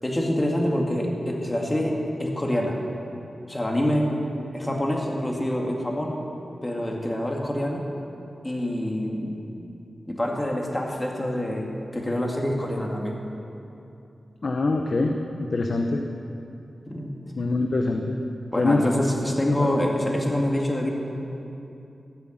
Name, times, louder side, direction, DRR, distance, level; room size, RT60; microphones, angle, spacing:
voice 1, 0.0-2.8 3.5-4.1 4.5-6.2 6.6-7.8 8.4-9.4 10.1-13.2 16.9-17.1 18.5-20.9, left 1 dB, 20° left, -1 dB, 2.4 m, -26 dB
voice 2, 14.4-16.0 17.4-18.2 18.6-18.8 19.6-19.7, left 2 dB, 60° left, 3 dB, 0.9 m, -24 dB
14.5 x 8.3 x 7.5 m, 2.7 s
cardioid pair, 60°, 0 cm